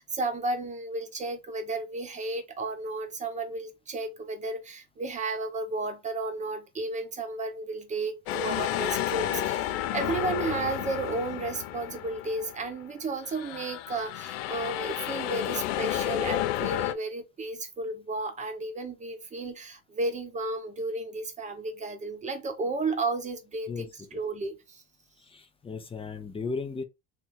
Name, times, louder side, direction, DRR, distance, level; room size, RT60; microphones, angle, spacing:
voice 1, 0.0-24.8, right 3 dB, 20° right, 1.0 m, -33 dB
sound 1, 8.3-12.8 13.2-16.9, left 13 dB, 70° left, 0.7 m, -31 dB
voice 2, 23.7-24.2 25.2-26.8, left 4 dB, 15° left, 0.8 m, -36 dB
3.5 x 2.8 x 4.4 m
supercardioid pair, 125°, 37 cm